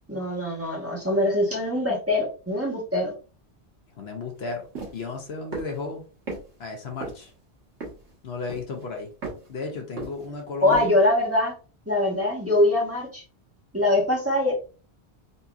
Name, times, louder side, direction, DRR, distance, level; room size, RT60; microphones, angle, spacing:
voice 1, 0.1-3.1 10.6-11.5 11.9-13.2 13.7-14.5, left 1 dB, 15° right, -5 dB, 1.2 m, -23 dB
voice 2, 4.0-4.7 4.9-6.0 6.6-7.3 8.2-9.1 9.5-10.9, left 3 dB, 70° left, 3 dB, 1.0 m, -34 dB
sound 1, 4.7-5.0 5.5-5.8 6.3-6.4 7.0-7.3 7.8-8.1 8.5-8.8 9.2-9.5 10.0-10.4 10.7-10.9, right 3 dB, 85° right, 1.4 m, -34 dB
4.2 x 2.7 x 2.3 m, 0.36 s
omnidirectional pair, 1.1 m